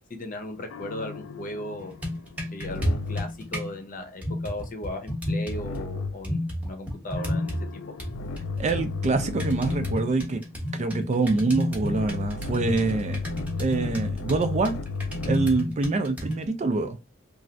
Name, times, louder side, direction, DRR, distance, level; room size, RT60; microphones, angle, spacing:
voice 1, 0.1-1.9 2.5-7.8, left 1 dB, 45° left, 0.7 m, -37 dB
sound 1, 0.7-3.5 5.5-6.3 7.2-10.2 11.8-15.7, left 3 dB, 75° left, 0.3 m, -34 dB
sound 2, 1.8-3.7 4.2-5.8 6.2-7.7 8.0-16.5, left 1 dB, 5° right, 0.9 m, -32 dB
voice 2, 8.6-10.4 10.7-13.2 13.6-14.8 15.3-17.0, right 3 dB, 35° right, 0.4 m, -25 dB
3.1 x 2.4 x 2.5 m
head